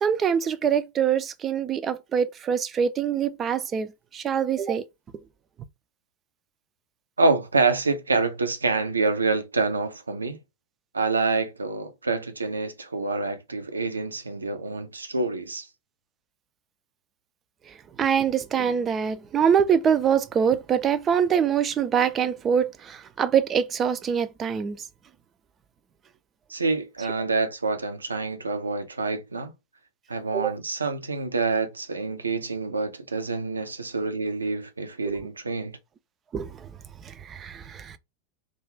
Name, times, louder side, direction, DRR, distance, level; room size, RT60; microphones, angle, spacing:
voice 1, 0.0-4.8 18.0-24.8 30.3-30.5 35.0-35.2 36.3-36.7 37.0-38.0, right 7 dB, 25° right, 0.4 m, -24 dB
voice 2, 7.2-10.4 10.9-15.7 26.5-29.5 30.1-35.7, right 3 dB, 75° right, 0.5 m, -27 dB
2.4 x 2.4 x 3.1 m
figure-of-eight pair, 90°, 0 cm